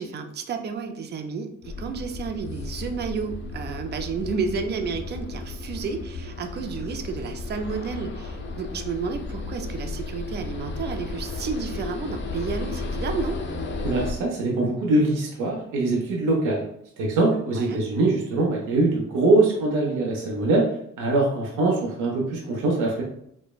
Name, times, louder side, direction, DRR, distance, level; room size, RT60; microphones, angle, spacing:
voice 1, 0.0-13.4 17.5-17.8, right 5 dB, 35° right, 6 dB, 0.4 m, -31 dB
sound 1, 1.6-14.1, left 3 dB, 40° left, 0.6 m, -34 dB
voice 2, 13.8-16.6 17.0-20.6 21.0-23.0, right 2 dB, 85° right, -1 dB, 0.7 m, -23 dB
3.1 x 2.1 x 2.3 m, 0.73 s
cardioid pair, 90°, 30 cm